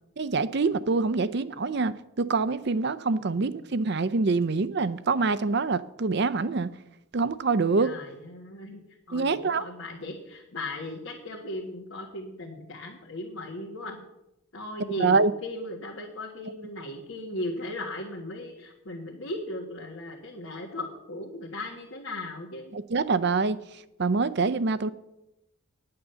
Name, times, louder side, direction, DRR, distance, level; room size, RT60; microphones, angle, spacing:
voice 1, 0.2-6.7 7.1-7.9 9.1-9.6 15.0-15.3 22.7-23.6 24.0-24.9, right 4 dB, 50° right, 15 dB, 0.5 m, -25 dB
voice 2, 7.8-8.8 9.1-14.0 14.5-22.8, left 1 dB, 75° left, -1 dB, 1.6 m, -37 dB
10.0 x 9.6 x 6.8 m, 0.89 s
head